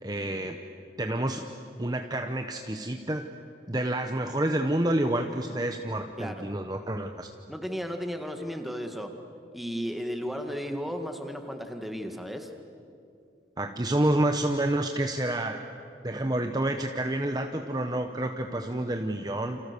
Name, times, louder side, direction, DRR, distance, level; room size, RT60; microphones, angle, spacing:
voice 1, 0.0-0.6 1.0-3.3 3.7-7.3 13.6-15.6 16.0-19.6, right 1 dB, 20° right, 5 dB, 0.9 m, -29 dB
voice 2, 7.5-9.2 9.5-12.5, equal, ahead, 5 dB, 1.8 m, -34 dB
29.5 x 28.0 x 6.9 m, 2.5 s
head